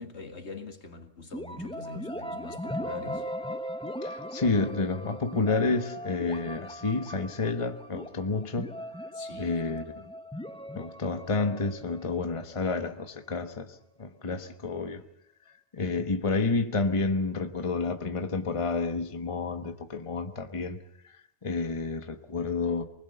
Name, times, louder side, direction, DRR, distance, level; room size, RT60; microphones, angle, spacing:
voice 1, 0.0-3.3 9.1-9.6, left 4 dB, 75° left, 2.3 m, -42 dB
sound 1, 1.3-13.0, equal, 5° left, 0.7 m, -39 dB
voice 2, 4.0-8.7 9.4-10.1 10.7-15.0 15.7-20.8 21.0-21.1 21.4-22.8, left 3 dB, 30° left, 1.2 m, -30 dB
24.5 x 20.0 x 6.9 m
omnidirectional pair, 1.1 m